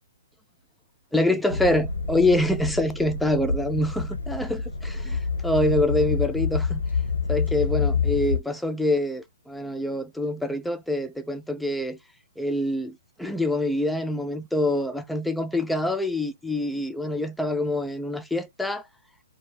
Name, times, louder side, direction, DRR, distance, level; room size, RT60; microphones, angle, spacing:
voice 1, 1.1-6.8 7.3-12.0 12.4-18.8, left 1 dB, ahead, 0.4 m, -25 dB
sound 1, 1.5-8.4, left 4 dB, 90° left, 0.7 m, -27 dB
2.6 x 2.2 x 3.3 m
hypercardioid pair, 135°, 0 cm